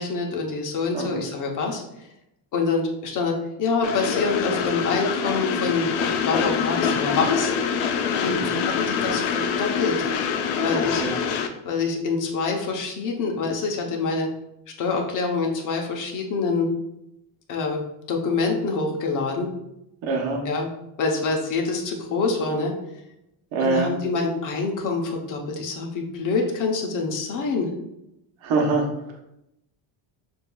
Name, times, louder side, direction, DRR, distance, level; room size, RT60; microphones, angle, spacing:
voice 1, 0.0-1.8 2.5-5.9 6.2-7.5 8.2-10.1 10.6-11.0 11.6-14.3 14.8-16.7 17.5-17.8 18.1-19.5 20.4-20.7 21.0-22.7 23.6-27.7, left 4 dB, 40° left, 1 dB, 0.8 m, -26 dB
Train, 3.8-11.5, left 6 dB, 90° left, 0.7 m, -25 dB
voice 2, 10.7-11.2 20.0-20.4 23.5-23.9 28.4-28.9, right 3 dB, 70° right, 1 dB, 1.0 m, -24 dB
6.5 x 2.6 x 2.3 m, 0.84 s
cardioid pair, 150°, 47 cm